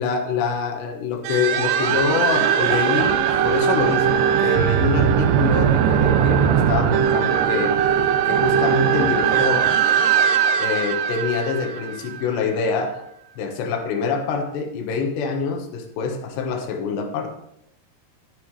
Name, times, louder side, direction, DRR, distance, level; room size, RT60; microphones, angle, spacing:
voice 1, 0.0-9.7 10.6-13.0 13.4-17.3, left 5 dB, 85° left, 4 dB, 3.5 m, -25 dB
sound 1, 1.2-12.5, right 8 dB, 80° right, 2.0 m, -20 dB
12.5 x 11.0 x 3.2 m, 0.77 s
omnidirectional pair, 4.8 m